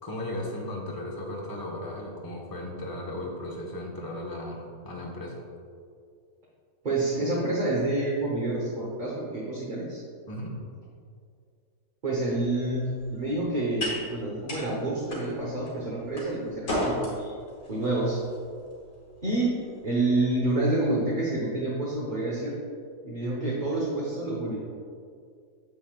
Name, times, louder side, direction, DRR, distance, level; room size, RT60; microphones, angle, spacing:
voice 1, 0.0-5.4 10.3-10.6, left 1 dB, 15° left, -3 dB, 1.1 m, -36 dB
voice 2, 6.8-10.0 12.0-17.3 17.7-18.2 19.2-22.5 23.0-24.6, right 2 dB, 35° right, -5 dB, 1.2 m, -28 dB
sound 1, 12.2-20.6, left 1 dB, 85° left, 2.7 m, -37 dB
9.4 x 7.8 x 2.4 m, 2.2 s
omnidirectional pair, 1.4 m